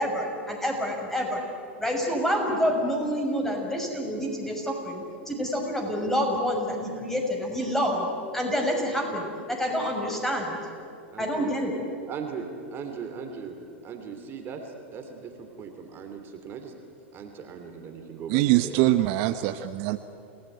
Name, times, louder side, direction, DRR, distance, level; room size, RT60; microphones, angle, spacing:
voice 1, 0.0-1.4 1.8-8.0 8.3-10.6 11.2-11.7, equal, 5° left, 1 dB, 6.4 m, -27 dB
voice 2, 11.1-11.5 12.1-13.5 13.8-16.8 17.1-18.8, right 6 dB, 35° right, 5 dB, 3.1 m, -39 dB
voice 3, 18.3-20.0, right 16 dB, 55° right, 10 dB, 1.0 m, -23 dB
28.0 x 18.5 x 9.4 m, 2.6 s
hypercardioid pair, 105°, 7 cm